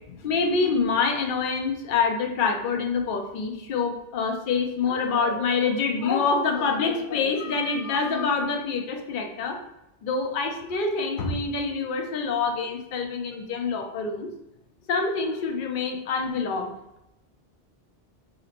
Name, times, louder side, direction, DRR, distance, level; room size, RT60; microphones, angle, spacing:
voice 1, 0.1-9.6 10.0-14.3 14.9-16.7, left 4 dB, 60° left, 3 dB, 0.7 m, -26 dB
3.9 x 2.9 x 2.5 m, 0.85 s
omnidirectional pair, 1.0 m